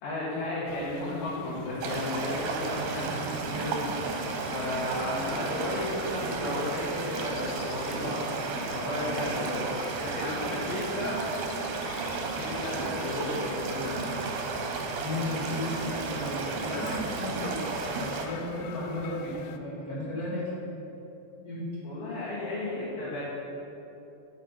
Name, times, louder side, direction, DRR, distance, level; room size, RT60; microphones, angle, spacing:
voice 1, 0.0-3.7 4.5-9.6 10.0-11.2 12.3-14.1 21.8-23.2, left 1 dB, 70° left, -8 dB, 3.1 m, -34 dB
sound 1, 0.7-19.6, left 7 dB, 85° left, 1.9 m, -45 dB
sound 2, 1.8-18.3, right 4 dB, 75° right, 2.5 m, -33 dB
voice 2, 14.8-20.4 21.4-21.8, left 1 dB, 35° left, -7 dB, 1.6 m, -35 dB
8.3 x 6.7 x 5.6 m, 3.0 s
omnidirectional pair, 4.3 m